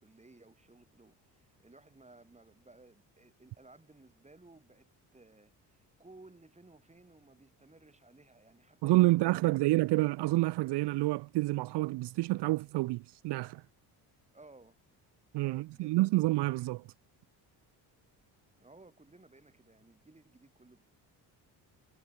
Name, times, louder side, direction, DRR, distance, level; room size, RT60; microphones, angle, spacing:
voice 1, 0.0-9.9 14.3-14.8 15.4-16.0 18.6-20.8, right 2 dB, 15° right, 5.0 m, -58 dB
voice 2, 8.8-13.6 15.3-16.8, right 19 dB, 70° right, 0.7 m, -28 dB
supercardioid pair, 80°, 43 cm